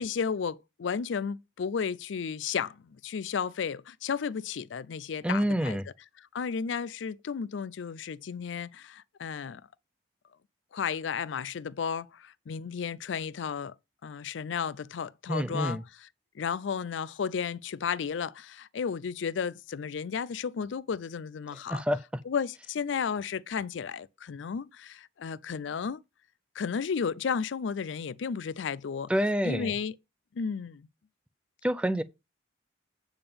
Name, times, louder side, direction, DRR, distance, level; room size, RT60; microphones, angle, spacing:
voice 1, 0.0-5.8 6.3-9.6 10.7-13.7 14.0-15.8 16.3-21.8 22.3-26.0 26.5-29.1 29.4-29.9 30.3-30.9, left 6 dB, 75° left, 0.4 m, -33 dB
voice 2, 5.2-5.8 15.3-15.8 21.7-22.0 29.1-29.7 31.6-32.0, equal, 5° right, 0.4 m, -27 dB
8.8 x 3.6 x 6.9 m
head